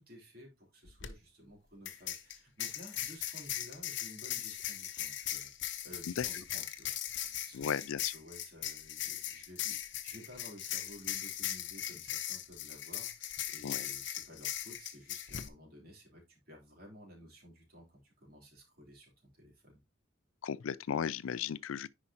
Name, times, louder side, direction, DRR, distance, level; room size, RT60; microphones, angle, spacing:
voice 1, 0.0-19.8, equal, 50° right, 3.6 m, -54 dB
sound 1, 0.9-1.1 1.8-15.5, left 12 dB, 60° left, 0.8 m, -39 dB
voice 2, 7.5-8.1 13.6-13.9 20.4-21.9, left 8 dB, 80° left, 0.4 m, -35 dB
9.8 x 5.0 x 2.9 m
head